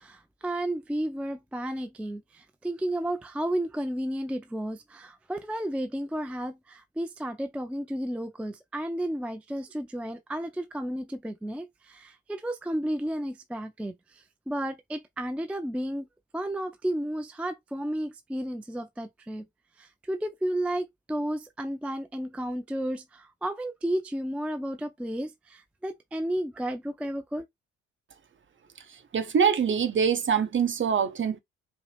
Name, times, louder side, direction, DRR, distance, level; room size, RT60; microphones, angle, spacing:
voice 1, 0.0-16.1 16.3-19.5 19.8-27.5, right 1 dB, 5° right, 0.4 m, -32 dB
voice 2, 29.1-31.4, right 7 dB, 35° right, 0.9 m, -24 dB
4.8 x 2.1 x 3.2 m
figure-of-eight pair, 45°, 35 cm